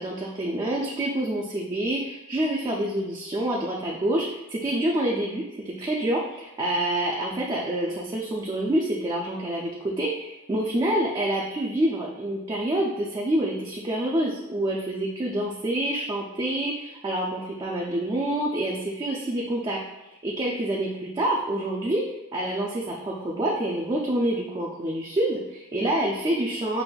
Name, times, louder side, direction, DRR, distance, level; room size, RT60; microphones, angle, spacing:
voice 1, 0.0-19.8 20.2-22.0 22.3-26.8, right 1 dB, 20° right, -3 dB, 0.3 m, -27 dB
5.4 x 2.4 x 2.3 m, 0.99 s
head